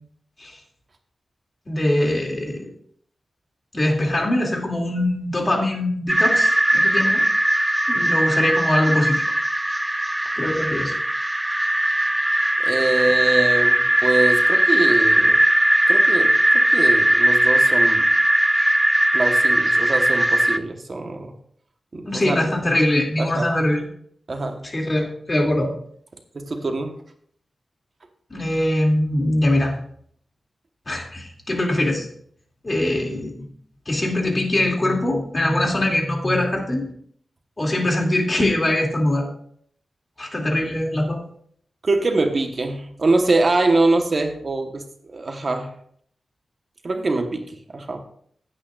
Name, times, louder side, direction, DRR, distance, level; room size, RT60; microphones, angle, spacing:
voice 1, 1.7-2.7 3.7-7.3 7.9-9.2 10.3-10.9 22.0-23.8 24.6-25.7 28.3-29.7 30.9-32.1 32.6-33.5 33.9-36.9 37.6-39.3 40.2-41.2, left 1 dB, 30° left, 0 dB, 2.5 m, -22 dB
sound 1, 6.1-20.6, right 1 dB, 10° right, 0.5 m, -19 dB
voice 2, 12.6-15.4 15.9-18.1 19.1-21.3 21.9-22.4 23.2-23.5 24.3-24.6 26.3-26.9 41.8-45.7 46.8-48.0, right 2 dB, 45° right, 5 dB, 1.1 m, -23 dB
16.5 x 8.7 x 2.4 m, 0.63 s
wide cardioid pair, 110°, 0 cm